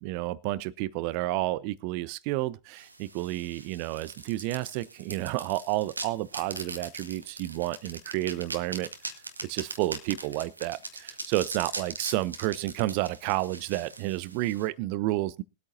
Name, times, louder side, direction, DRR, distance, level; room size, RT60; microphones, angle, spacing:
voice 1, 0.0-8.9 9.4-15.4, right 17 dB, 45° right, 0.5 m, -31 dB
sound 1, 2.8-14.7, right 2 dB, 85° right, 1.2 m, -40 dB
21.5 x 8.5 x 2.7 m
figure-of-eight pair, 95°, 0 cm